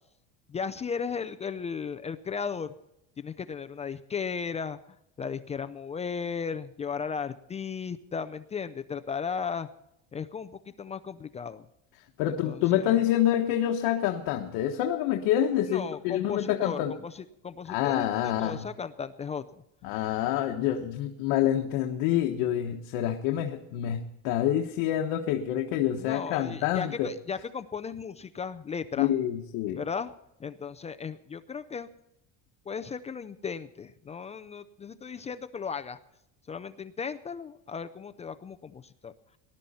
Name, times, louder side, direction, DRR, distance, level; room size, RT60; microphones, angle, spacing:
voice 1, 0.5-2.7 3.2-4.8 5.2-9.7 10.1-11.7 12.4-13.0 15.7-19.4 25.9-29.1 29.7-30.1 30.4-31.9 32.7-36.0 36.5-39.1, left 6 dB, 20° left, 11 dB, 0.4 m, -35 dB
voice 2, 12.2-16.9 17.7-18.7 19.8-27.1 29.0-29.8, left 11 dB, 80° left, 3 dB, 1.3 m, -27 dB
19.0 x 12.0 x 4.2 m, 0.81 s
cardioid pair, 155°, 35 cm